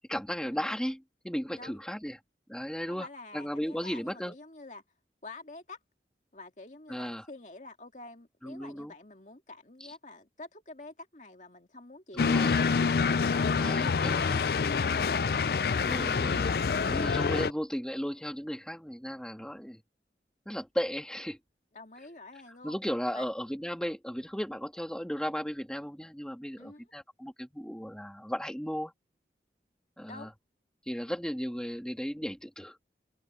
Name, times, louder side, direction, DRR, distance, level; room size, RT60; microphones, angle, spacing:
voice 1, 0.1-2.2 2.5-3.1 3.3-4.3 6.9-7.3 8.4-8.9 9.8-9.9 12.1-12.6 13.6-14.4 15.8-16.5 16.8-19.8 20.5-21.4 22.6-28.9 30.0-30.3 30.9-32.9, equal, 5° left, 2.2 m, -35 dB
voice 2, 2.9-4.8 5.2-5.8 6.3-16.0 21.7-22.8 23.1-23.3 26.6-26.8 30.1-30.3, left 2 dB, 45° left, 2.3 m, -48 dB
sound 1, 12.2-17.5, left 5 dB, 60° left, 0.4 m, -26 dB
head